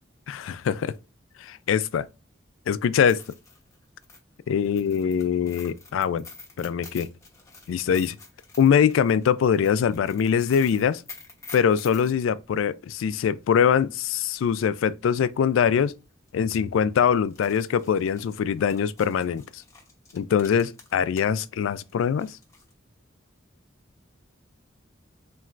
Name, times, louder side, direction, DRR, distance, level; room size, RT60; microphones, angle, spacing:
voice 1, 0.3-0.9 1.4-2.1 2.7-3.2 4.5-6.2 6.6-7.1 7.7-8.2 8.6-11.0 11.5-15.9 16.3-19.6 20.1-22.4, left 7 dB, 85° left, 0.3 m, -23 dB
sound 1, 2.9-12.1 14.3-14.4 14.8-14.9 15.7-15.9 16.2-16.3 17.2-21.4 21.7-22.7, left 4 dB, 15° left, 0.8 m, -48 dB
4.3 x 3.0 x 2.4 m
head